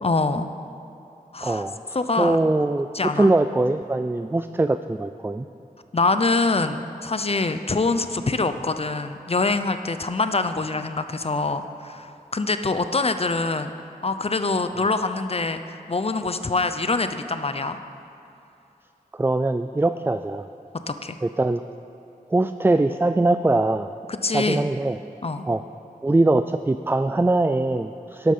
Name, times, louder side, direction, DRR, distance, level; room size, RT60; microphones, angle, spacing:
voice 1, 0.0-0.5 1.3-1.6 1.9-2.4 2.9-3.3 5.9-13.7 14.0-17.8 20.9-21.2 24.1-24.6 25.2-25.5, left 3 dB, 40° left, 9 dB, 0.7 m, -24 dB
voice 2, 1.4-2.9 3.1-5.5 19.1-20.5 21.2-21.6 22.3-23.9 24.3-25.0 25.5-25.6 26.0-28.3, right 2 dB, 15° right, 10 dB, 0.3 m, -22 dB
12.5 x 11.5 x 5.5 m, 2.8 s
wide cardioid pair, 75°, 15 cm